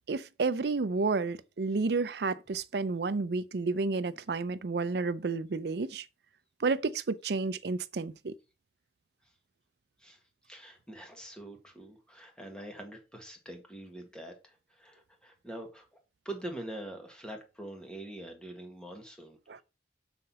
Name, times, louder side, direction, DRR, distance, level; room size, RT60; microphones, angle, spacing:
voice 1, 0.1-6.1 6.6-8.4 19.5-19.6, right 4 dB, 65° right, 0.5 m, -31 dB
voice 2, 10.5-15.9 16.2-19.6, right 1 dB, 5° left, 1.6 m, -44 dB
6.6 x 5.8 x 4.1 m
head